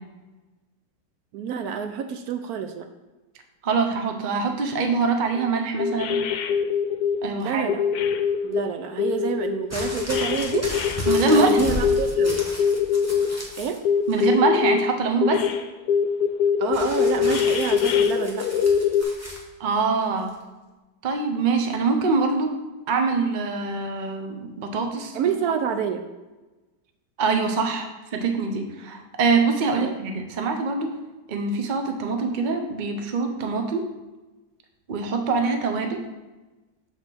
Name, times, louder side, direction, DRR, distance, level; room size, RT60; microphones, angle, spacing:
voice 1, 1.3-2.9 7.3-7.8 8.4-10.7 11.2-12.4 13.6-13.8 16.6-18.5 25.1-26.1 29.7-29.9, right 7 dB, 70° right, 7 dB, 1.0 m, -28 dB
voice 2, 3.6-6.2 7.2-7.7 11.1-11.6 14.1-15.4 19.6-20.3 21.0-22.5 22.9-25.2 27.2-30.9 31.3-33.8 34.9-36.0, right 4 dB, 50° right, 4 dB, 0.5 m, -24 dB
sound 1, 5.4-5.5 5.8-7.2 7.7-8.6 9.0-13.3 13.8-14.8 15.2-15.6 15.9-19.0, left 7 dB, 75° left, 1.1 m, -22 dB
sound 2, 9.7-13.8 14.1-14.7 16.7-19.4 20.3-20.4, left 1 dB, 10° right, 1.1 m, -34 dB
6.6 x 3.5 x 6.1 m, 1.1 s
omnidirectional pair, 1.8 m